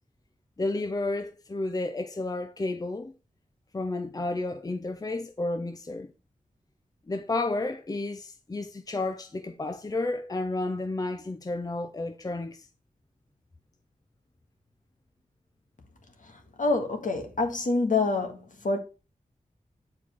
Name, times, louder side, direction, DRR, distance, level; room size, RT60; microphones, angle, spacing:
voice 1, 0.6-3.1 3.7-6.1 7.1-12.7, left 2 dB, 25° left, 0.6 m, -31 dB
voice 2, 16.6-18.8, left 3 dB, 65° left, 1.6 m, -26 dB
7.5 x 4.3 x 4.4 m
wide cardioid pair, 80°, 15 cm